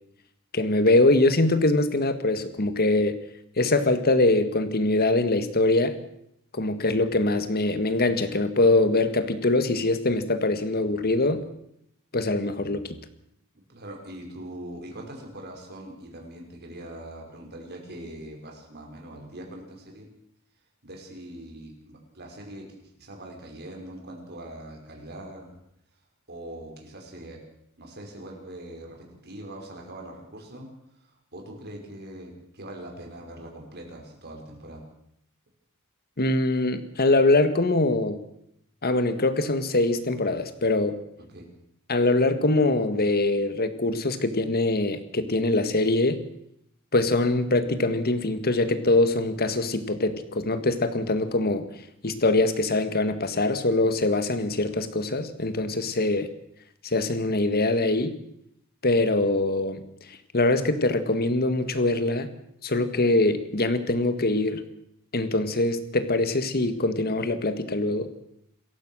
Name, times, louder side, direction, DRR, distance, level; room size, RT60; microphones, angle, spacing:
voice 1, 0.5-3.2 3.6-6.0 6.5-11.4 12.1-12.8 36.2-38.2 38.8-41.0 41.9-46.2 46.9-51.7 52.0-56.3 56.8-58.2 58.8-59.8 60.3-62.3 62.6-64.6 65.1-68.1, left 2 dB, 45° left, 11 dB, 1.8 m, -23 dB
voice 2, 13.5-20.1 20.8-22.7 23.0-25.6 26.3-27.4 27.8-30.7 31.0-34.8 41.3-41.5, right 1 dB, 50° right, 1 dB, 5.6 m, -42 dB
27.5 x 15.0 x 6.4 m, 0.75 s
head